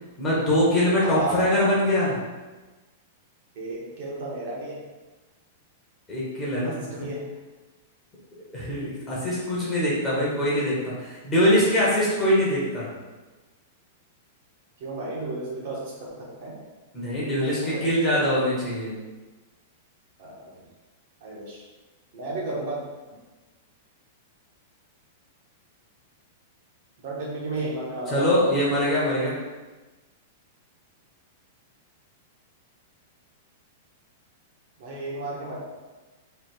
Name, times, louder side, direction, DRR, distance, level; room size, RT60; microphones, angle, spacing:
voice 1, 0.2-2.2 6.1-6.9 8.5-12.9 16.9-19.0 28.1-29.3, left 1 dB, 15° left, -7 dB, 0.9 m, -23 dB
voice 2, 1.0-1.5 3.5-4.8 6.5-7.3 14.8-16.6 17.3-18.0 20.2-20.5 21.2-21.6 22.1-22.8 27.0-28.6 34.8-35.6, right 2 dB, 45° right, -4 dB, 1.1 m, -33 dB
3.2 x 2.8 x 4.3 m, 1.2 s
supercardioid pair, 175°, 0 cm